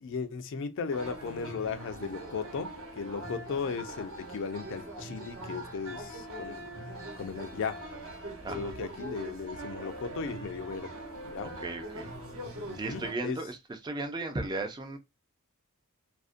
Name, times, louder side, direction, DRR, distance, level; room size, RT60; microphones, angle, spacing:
voice 1, 0.0-2.7 3.0-6.6 7.2-7.8 8.5-10.9 11.2-11.5 12.7-13.4, left 5 dB, 60° left, 0.4 m, -36 dB
sound 1, 0.9-13.1, right 1 dB, 65° right, 0.9 m, -42 dB
voice 2, 8.4-8.7 11.6-12.1 12.7-15.0, right 2 dB, 20° right, 0.3 m, -36 dB
2.4 x 2.0 x 2.5 m
head